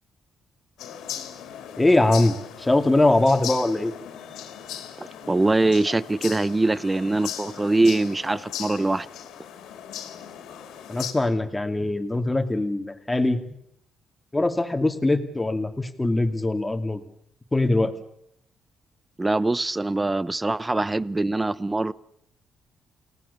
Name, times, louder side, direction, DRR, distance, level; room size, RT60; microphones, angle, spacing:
sound 1, 0.8-11.1, left 10 dB, 90° left, 3.5 m, -38 dB
voice 1, 1.8-3.9 10.9-13.4 14.3-17.0 17.5-17.9, left 2 dB, 15° left, 2.5 m, -22 dB
voice 2, 5.0-9.1 19.2-21.9, right 2 dB, 15° right, 0.8 m, -23 dB
29.0 x 18.0 x 6.9 m
cardioid pair, 90°, 0 cm